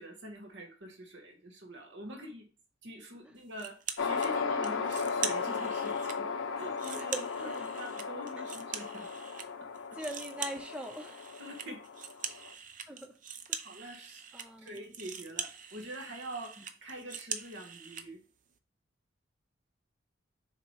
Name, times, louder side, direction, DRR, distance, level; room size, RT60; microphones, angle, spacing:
voice 1, 0.0-2.5 2.8-6.3 6.5-9.1 11.4-11.8 13.6-14.2 14.6-18.2, right 1 dB, 60° right, 1 dB, 1.4 m, -45 dB
sound 1, 3.6-4.3 4.6-6.2 6.6-9.5 9.7-18.1, right 7 dB, 40° right, 0.6 m, -42 dB
sound 2, 4.0-12.5, left 5 dB, 85° left, 0.7 m, -36 dB
voice 2, 6.9-7.5 10.0-11.1 12.9-13.1 14.3-14.7, right 1 dB, 5° right, 3 dB, 0.7 m, -41 dB
6.8 x 2.9 x 4.7 m, 0.39 s
head